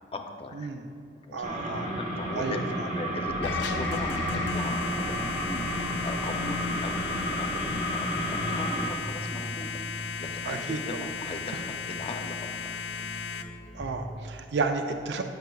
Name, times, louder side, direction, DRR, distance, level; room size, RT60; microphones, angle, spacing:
voice 1, 0.1-0.7 1.3-12.4 12.6-12.8, left 2 dB, 35° left, 4 dB, 0.5 m, -39 dB
voice 2, 1.3-1.9 2.3-2.9 10.5-11.1 13.7-15.2, right 4 dB, 70° right, 6 dB, 0.4 m, -32 dB
sound 1, 1.4-8.9, equal, 45° right, 0.8 m, -31 dB
sound 2, 3.3-14.1, equal, 10° right, 1.0 m, -43 dB
sound 3, 3.4-13.4, left 6 dB, 85° left, 0.4 m, -35 dB
9.2 x 6.5 x 2.3 m, 2.7 s
head